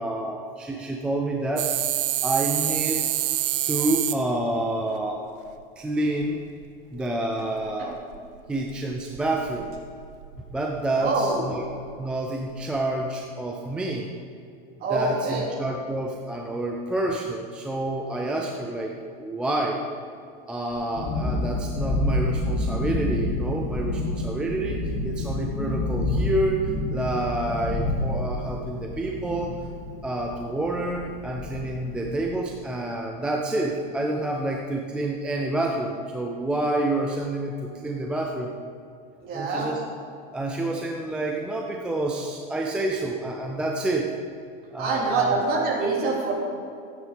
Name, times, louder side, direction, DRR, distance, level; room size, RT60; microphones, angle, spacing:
voice 1, 0.0-1.7 2.2-3.0 3.7-5.2 5.8-6.4 6.9-8.0 8.5-9.8 10.5-11.7 12.0-14.1 14.9-19.9 20.5-29.6 30.0-38.5 39.3-39.8 40.3-44.1 44.7-45.4, right 2 dB, 5° right, 0 dB, 0.3 m, -28 dB
sound 1, 1.6-4.2 6.2-6.3 6.6-6.7 7.0-7.1 7.5-8.8 9.2-10.6 11.0-11.1 11.7-12.1 12.5-12.6, right 14 dB, 65° right, 0.8 m, -27 dB
voice 2, 10.9-11.5 14.8-15.5 39.2-39.7 44.8-46.3, right 3 dB, 30° right, -3 dB, 3.3 m, -25 dB
Thunderstorm, 20.7-32.3, left 1 dB, 40° left, 2.5 m, -29 dB
14.5 x 9.2 x 5.2 m, 2.5 s
supercardioid pair, 155°, 30 cm